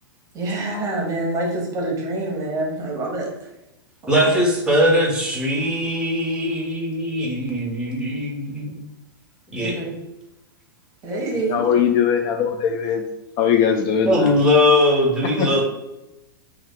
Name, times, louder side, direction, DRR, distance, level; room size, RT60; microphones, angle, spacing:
voice 1, 0.3-3.5 4.2-4.4 9.6-10.0 11.0-11.6, right 2 dB, 30° right, -1 dB, 1.1 m, -26 dB
voice 2, 4.1-8.8 9.5-9.9 14.1-15.6, left 1 dB, 5° right, -2 dB, 1.1 m, -20 dB
voice 3, 11.5-13.0 13.4-14.4 15.4-15.6, left 7 dB, 40° left, 4 dB, 0.4 m, -20 dB
2.7 x 2.3 x 3.6 m, 0.93 s
hypercardioid pair, 110°, 12 cm